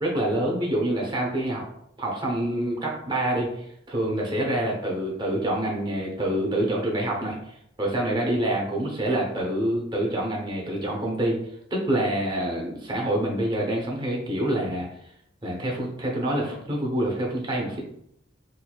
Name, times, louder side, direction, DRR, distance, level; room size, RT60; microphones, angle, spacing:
voice 1, 0.0-1.6 2.0-11.4 11.8-14.9 15.4-17.8, right 1 dB, 20° right, -2 dB, 0.7 m, -26 dB
4.4 x 2.7 x 2.3 m, 0.73 s
head